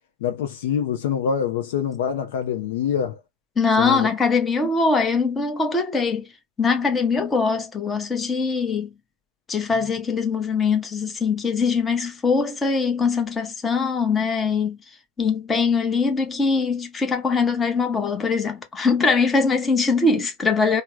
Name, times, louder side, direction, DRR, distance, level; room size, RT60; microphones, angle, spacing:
voice 1, 0.2-3.2 3.8-4.1, left 8 dB, 55° left, 0.6 m, -25 dB
voice 2, 3.6-6.3 6.6-8.9 9.5-14.8 15.2-20.8, left 4 dB, 15° left, 0.8 m, -22 dB
3.3 x 2.1 x 3.1 m
figure-of-eight pair, 90°, 0 cm